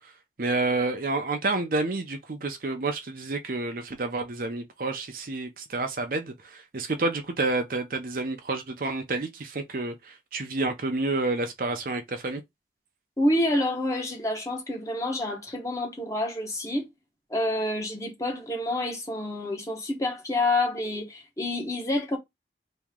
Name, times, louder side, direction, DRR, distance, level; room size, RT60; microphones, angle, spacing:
voice 1, 0.4-12.4, right 3 dB, 50° right, 0.6 m, -29 dB
voice 2, 13.2-16.9 17.3-22.2, left 1 dB, 20° left, 0.9 m, -28 dB
3.0 x 2.8 x 3.6 m
head